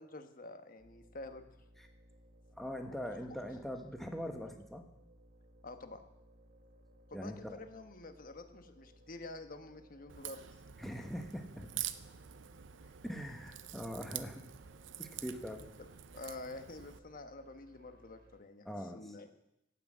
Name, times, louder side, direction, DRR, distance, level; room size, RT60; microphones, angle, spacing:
voice 1, 0.0-1.4 5.6-6.0 7.1-10.4 12.8-12.9 16.1-19.3, left 2 dB, 50° left, 7 dB, 1.1 m, -48 dB
sound 1, 0.8-18.4, right 1 dB, 55° right, 1.8 m, -62 dB
voice 2, 2.6-4.8 7.1-7.6 10.8-11.7 13.0-14.5 15.0-15.7 18.6-19.0, equal, ahead, 4 dB, 1.3 m, -42 dB
Crack, 10.1-17.0, right 12 dB, 85° right, 0.6 m, -46 dB
16.5 x 6.1 x 7.6 m, 0.86 s
head